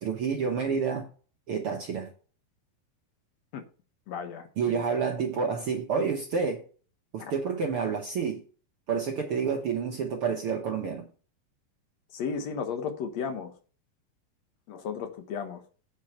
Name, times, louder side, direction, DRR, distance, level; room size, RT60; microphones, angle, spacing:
voice 1, 0.0-1.1 1.5-2.1 4.6-6.6 7.1-8.4 8.9-11.1, right 6 dB, 70° right, 1.3 m, -29 dB
voice 2, 4.1-5.1 7.2-7.6 12.1-13.6 14.7-15.6, left 6 dB, 65° left, 1.8 m, -35 dB
8.9 x 4.8 x 5.7 m
omnidirectional pair, 4.0 m